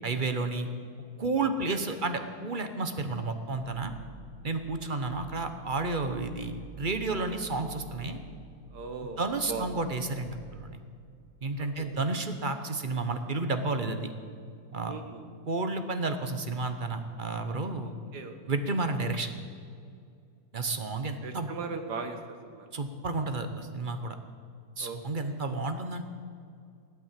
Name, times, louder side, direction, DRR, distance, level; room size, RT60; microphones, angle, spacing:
voice 1, 0.0-0.7 1.2-3.9 4.4-8.2 9.2-10.8 11.4-14.1 14.7-15.0 15.5-17.9 18.5-19.4 20.5-21.5 22.7-24.2 24.8-26.0, right 3 dB, 35° right, 8 dB, 1.0 m, -31 dB
voice 2, 1.4-2.0 8.7-9.7 11.6-11.9 14.8-15.3 17.8-18.4 21.2-22.2 22.5-22.7 24.8-25.4, right 5 dB, 75° right, 6 dB, 1.9 m, -39 dB
sound 1, 3.5-12.2, right 6 dB, 55° right, 1.4 m, -50 dB
16.0 x 12.0 x 7.5 m, 2.3 s
omnidirectional pair, 1.8 m